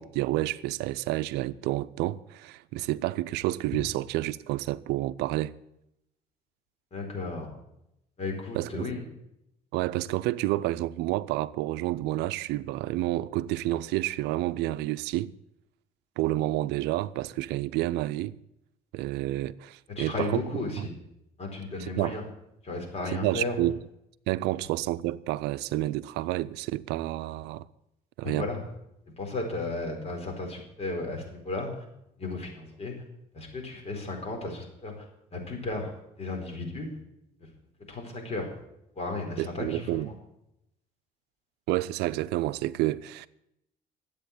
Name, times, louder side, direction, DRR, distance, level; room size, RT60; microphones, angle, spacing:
voice 1, 0.0-5.5 8.5-8.9 9.7-15.3 16.2-18.4 18.9-20.9 21.8-22.2 23.1-23.8 24.3-27.7 28.2-28.5 39.4-40.1 41.7-43.3, right 16 dB, 90° right, 0.5 m, -29 dB
voice 2, 6.9-7.5 8.2-9.0 20.0-20.9 21.4-22.2 22.6-23.6 28.2-28.6 29.2-31.8 32.2-32.9 33.3-34.9 35.3-35.9 36.2-36.9 37.9-38.5 39.0-40.1, left 3 dB, 40° left, 4.5 m, -34 dB
12.5 x 8.6 x 8.5 m
cardioid pair, 110°, 17 cm